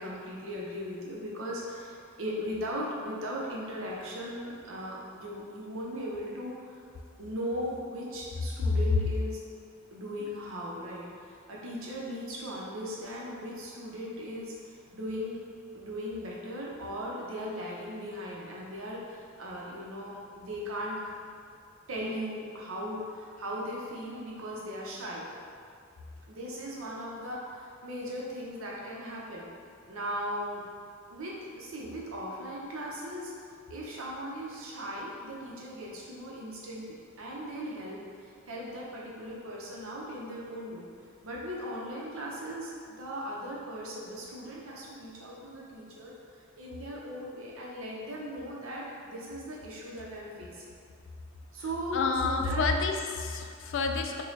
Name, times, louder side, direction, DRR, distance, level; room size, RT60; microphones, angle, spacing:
voice 1, 0.0-6.8 7.2-9.4 9.9-15.4 15.7-21.2 21.9-25.2 26.3-29.5 29.9-30.6 31.1-33.3 33.7-40.8 41.2-50.6 51.5-52.7, equal, 80° right, -4 dB, 0.7 m, -38 dB
voice 2, 51.9-54.2, left 4 dB, 65° left, 4 dB, 0.3 m, -29 dB
3.1 x 2.2 x 4.0 m, 2.2 s
head